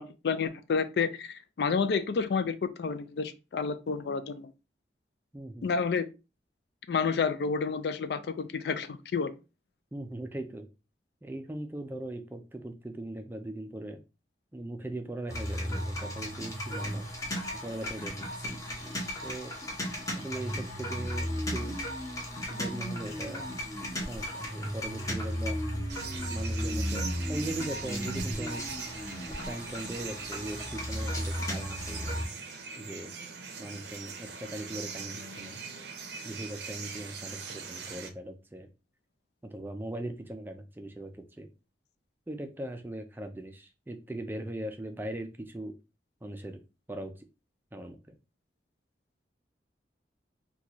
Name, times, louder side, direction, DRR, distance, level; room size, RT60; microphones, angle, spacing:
voice 1, 0.0-4.5 5.6-6.0 6.9-9.3, left 5 dB, 70° left, 0.4 m, -30 dB
voice 2, 5.3-5.7 9.9-10.7 11.2-14.0 14.5-17.1 17.6-18.6 19.2-19.5 20.2-21.8 22.5-23.5 24.0-25.6 26.3-28.6 29.3-32.2 32.8-33.1 33.6-35.6 36.2-38.7 39.4-41.1 41.4-41.5 42.3-45.7 46.2-46.6 46.9-47.1 47.7-48.1, right 1 dB, 10° right, 0.4 m, -39 dB
sound 1, 15.3-32.3, equal, 20° left, 0.8 m, -35 dB
sound 2, 25.9-38.1, right 5 dB, 70° right, 0.6 m, -41 dB
4.0 x 2.3 x 2.9 m
head